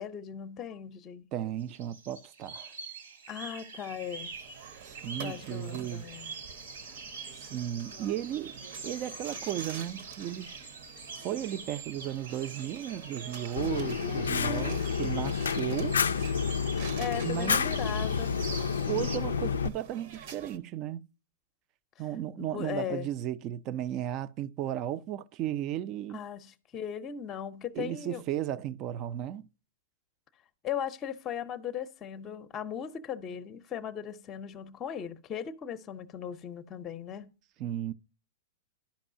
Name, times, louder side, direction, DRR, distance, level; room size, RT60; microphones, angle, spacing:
voice 1, 0.0-1.3 3.3-4.3 5.2-6.3 14.0-14.9 16.9-18.3 22.4-23.1 26.1-28.2 30.6-37.3, left 8 dB, 25° left, 0.6 m, -38 dB
voice 2, 1.3-2.7 4.8-6.1 7.3-10.6 11.2-16.0 17.2-17.7 18.9-21.1 22.0-26.2 27.7-29.5 37.6-37.9, right 11 dB, 40° right, 0.4 m, -35 dB
sound 1, 1.6-19.2, right 4 dB, 80° right, 1.4 m, -45 dB
sound 2, 3.9-20.6, right 6 dB, 60° right, 0.9 m, -48 dB
Fire, 13.6-19.7, left 6 dB, 90° left, 0.3 m, -29 dB
11.5 x 5.3 x 2.6 m
hypercardioid pair, 125°, 0 cm